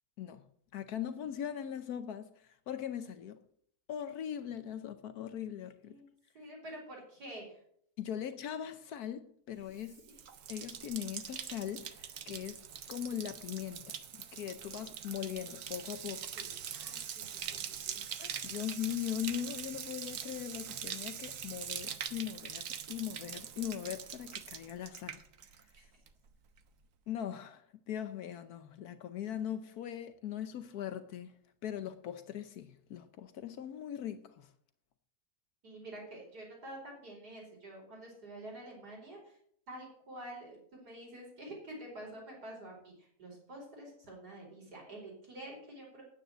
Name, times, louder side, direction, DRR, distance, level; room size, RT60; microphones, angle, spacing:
voice 1, 0.7-3.4 3.9-6.0 8.0-10.0 10.5-12.6 12.9-16.3 18.2-25.2 27.1-31.3 31.6-34.5, left 10 dB, 75° left, 1.3 m, -40 dB
voice 2, 6.3-7.6 10.0-10.1 16.3-18.0 25.7-25.8 35.6-39.4 39.7-46.0, right 1 dB, 90° right, 5.4 m, -48 dB
Bathtub (filling or washing), 9.7-25.8 26.1-26.6, right 8 dB, 60° right, 1.2 m, -43 dB
9.6 x 9.0 x 7.5 m
omnidirectional pair, 1.7 m